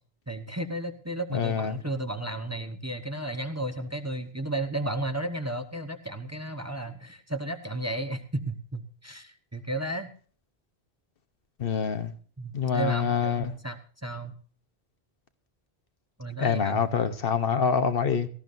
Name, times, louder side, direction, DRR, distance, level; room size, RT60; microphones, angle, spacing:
voice 1, 0.3-10.1 12.4-14.3 16.2-16.8, right 1 dB, 15° right, 0.9 m, -33 dB
voice 2, 1.3-1.8 11.6-12.1 12.5-13.6 16.4-18.3, left 6 dB, 65° left, 1.1 m, -26 dB
18.0 x 14.0 x 2.6 m
omnidirectional pair, 1.1 m